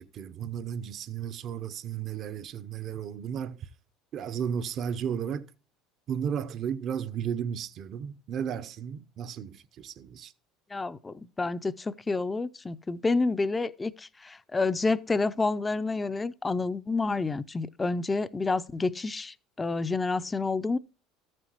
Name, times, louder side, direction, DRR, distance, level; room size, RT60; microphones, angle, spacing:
voice 1, 0.0-3.7 4.1-5.5 6.1-10.3, right 8 dB, 50° right, 0.7 m, -34 dB
voice 2, 10.7-20.8, left 3 dB, 20° left, 0.5 m, -29 dB
13.5 x 7.7 x 3.0 m
hypercardioid pair, 85°, 0 cm